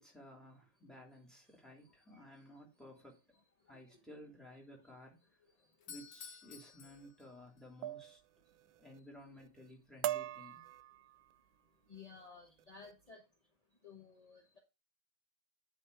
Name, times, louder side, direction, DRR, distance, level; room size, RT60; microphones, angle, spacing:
voice 1, 0.0-3.2 3.7-5.2 5.9-8.2 8.8-10.6, left 1 dB, ahead, 2.8 m, -55 dB
voice 2, 3.6-4.0 5.6-5.9 8.5-8.6 10.9-11.0 11.5-13.3 13.8-14.6, left 5 dB, 30° left, 0.8 m, -57 dB
Doorbell, 5.7-7.7, left 7 dB, 85° left, 2.0 m, -53 dB
sound 1, 6.8-7.1 7.8-8.2 8.5-9.0 9.4-9.7 10.0-11.4 12.0-12.2 12.6-12.9, right 13 dB, 85° right, 1.4 m, -42 dB
9.8 x 4.1 x 4.7 m
omnidirectional pair, 2.1 m